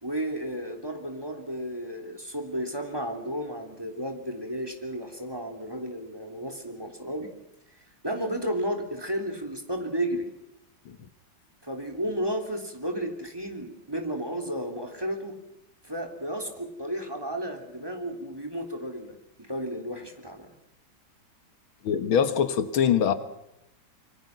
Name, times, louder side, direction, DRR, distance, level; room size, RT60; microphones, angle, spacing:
voice 1, 0.0-7.3 8.0-10.3 11.6-15.4 15.8-20.5, equal, 10° right, 5 dB, 3.4 m, -33 dB
voice 2, 21.8-23.1, left 8 dB, 85° left, 11 dB, 2.2 m, -23 dB
26.5 x 24.0 x 6.0 m, 0.86 s
omnidirectional pair, 2.2 m